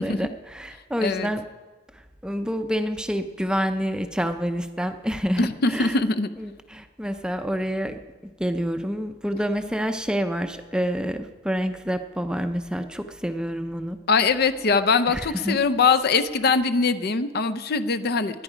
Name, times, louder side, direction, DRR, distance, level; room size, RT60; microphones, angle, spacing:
voice 1, 0.0-1.4 2.2-6.0 6.4-8.0 8.4-14.0 15.1-15.6, equal, 5° right, 7 dB, 0.6 m, -28 dB
voice 2, 1.0-1.3 5.4-6.3 14.1-18.4, left 4 dB, 55° left, 10 dB, 0.6 m, -22 dB
18.5 x 11.0 x 5.0 m, 1.3 s
head